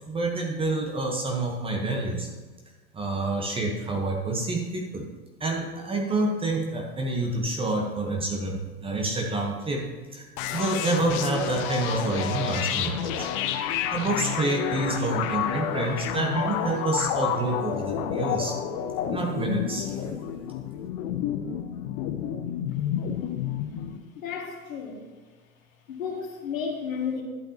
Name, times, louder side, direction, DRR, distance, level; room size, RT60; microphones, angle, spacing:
voice 1, 0.1-2.3 2.9-5.1 5.4-9.8 10.1-13.3 13.9-18.6 19.1-20.0, right 2 dB, 10° right, 0 dB, 1.1 m, -28 dB
sound 1, 10.4-24.0, left 9 dB, 25° left, 0.4 m, -30 dB
voice 2, 24.2-25.0 25.9-27.2, left 6 dB, 60° left, 0 dB, 2.2 m, -32 dB
12.0 x 8.5 x 2.9 m, 1.3 s
figure-of-eight pair, 100°, 44 cm